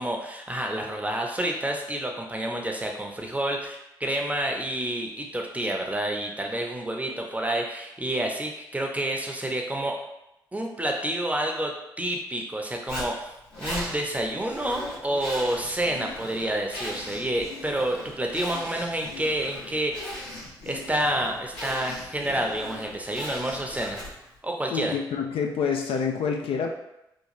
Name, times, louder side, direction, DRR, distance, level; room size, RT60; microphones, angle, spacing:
voice 1, 0.0-9.9 10.5-20.3 20.7-24.0 24.4-25.0, right 1 dB, 15° right, 1 dB, 0.6 m, -29 dB
Zipper (clothing), 12.9-24.3, left 1 dB, 85° left, 1.3 m, -39 dB
voice 2, 24.7-26.8, left 6 dB, 70° left, 2 dB, 0.4 m, -27 dB
3.0 x 2.3 x 2.5 m, 0.87 s
hypercardioid pair, 40°, 10 cm